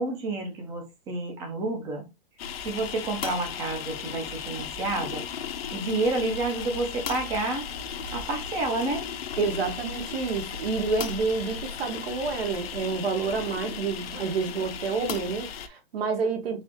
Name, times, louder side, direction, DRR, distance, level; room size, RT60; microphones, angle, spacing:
voice 1, 0.0-2.1 2.6-5.2 5.7-7.7 8.1-9.1, right 2 dB, 10° right, 0.6 m, -29 dB
sound 1, 2.4-15.7, left 7 dB, 70° left, 0.8 m, -36 dB
voice 2, 9.4-16.6, right 4 dB, 70° right, 1.6 m, -29 dB
4.1 x 3.7 x 3.0 m
hypercardioid pair, 170°, 31 cm